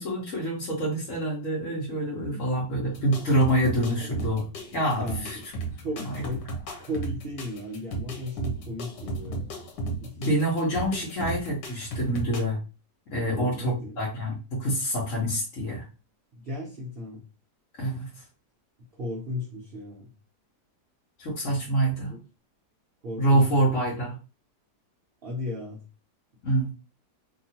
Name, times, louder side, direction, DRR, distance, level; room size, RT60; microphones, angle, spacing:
voice 1, 0.0-4.4 4.7-5.4 6.0-6.2 10.2-12.6 13.1-15.8 17.8-18.1 21.2-22.1 23.2-24.1 26.4-26.7, right 1 dB, 55° left, 1.3 m, -26 dB
voice 2, 1.7-2.5 3.9-4.1 5.0-5.5 5.8-6.5 6.8-9.5 10.0-10.2 13.2-14.0 16.3-17.2 19.0-20.1 22.1-22.2 23.0-23.6 25.2-25.8, left 1 dB, 60° right, 0.6 m, -35 dB
sound 1, 2.9-12.4, right 2 dB, 85° left, 1.4 m, -35 dB
2.9 x 2.6 x 2.8 m
omnidirectional pair, 1.8 m